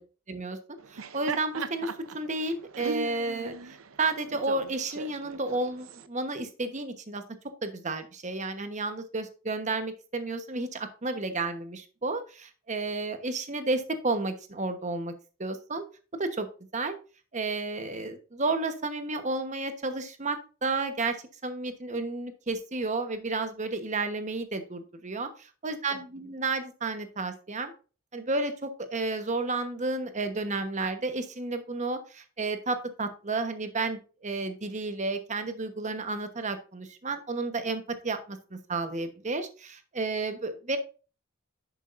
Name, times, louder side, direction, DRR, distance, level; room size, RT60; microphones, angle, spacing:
voice 1, 0.3-3.5 4.0-7.2 7.6-15.1 15.4-15.8 16.2-16.5 16.7-17.0 17.3-21.2 21.4-27.7 28.1-40.8, right 3 dB, 35° right, 8 dB, 1.1 m, -32 dB
Laughter, 0.8-6.1, right 4 dB, 80° right, 0.7 m, -39 dB
10.5 x 7.3 x 2.6 m, 0.35 s
head